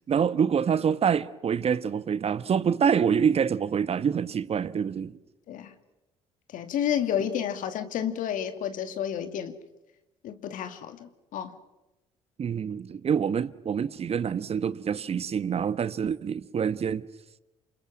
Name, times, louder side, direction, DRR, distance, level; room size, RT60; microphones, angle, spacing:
voice 1, 0.1-5.2 12.4-17.1, right 7 dB, 40° right, 1.3 m, -26 dB
voice 2, 6.5-9.6 10.2-11.6, left 9 dB, 60° left, 2.3 m, -30 dB
30.0 x 28.0 x 6.4 m
hypercardioid pair, 55°, 15 cm